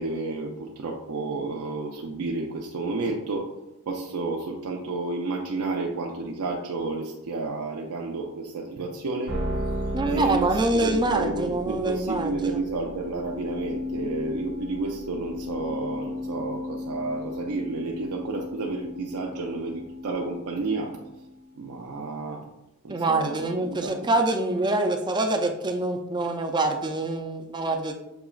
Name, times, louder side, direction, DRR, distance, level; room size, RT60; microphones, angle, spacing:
voice 1, 0.0-3.5 3.9-9.4 10.0-21.0 21.6-22.5 22.8-24.1, right 3 dB, 75° right, -1 dB, 0.5 m, -31 dB
sound 1, 9.3-21.6, left 1 dB, 55° right, 1.0 m, -35 dB
voice 2, 9.9-12.6 22.9-28.0, right 2 dB, 20° right, 5 dB, 0.4 m, -25 dB
7.0 x 2.9 x 2.3 m, 0.94 s
head